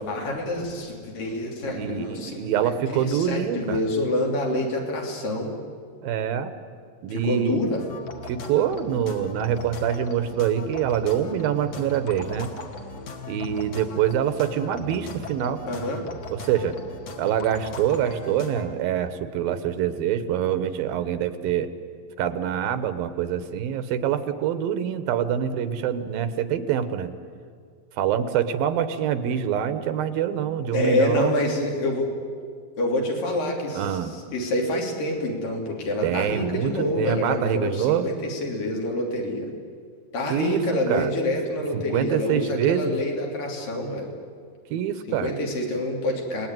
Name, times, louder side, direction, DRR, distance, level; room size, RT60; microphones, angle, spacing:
voice 1, 0.0-5.6 7.1-7.8 15.7-16.0 30.7-32.1 32.8-39.5 40.1-44.1 45.1-46.5, left 1 dB, 70° left, 0 dB, 4.8 m, -27 dB
voice 2, 1.6-3.8 6.0-6.5 7.0-7.6 8.3-12.5 13.3-15.6 16.3-16.8 17.2-21.7 22.2-27.1 28.0-31.3 33.7-34.1 36.0-38.1 40.3-40.6 40.9-41.1 41.7-42.9 44.7-45.3, right 9 dB, 80° right, 11 dB, 3.0 m, -25 dB
sound 1, 7.8-18.6, left 2 dB, 50° left, 2.8 m, -39 dB
29.5 x 19.5 x 9.2 m, 2.1 s
omnidirectional pair, 4.1 m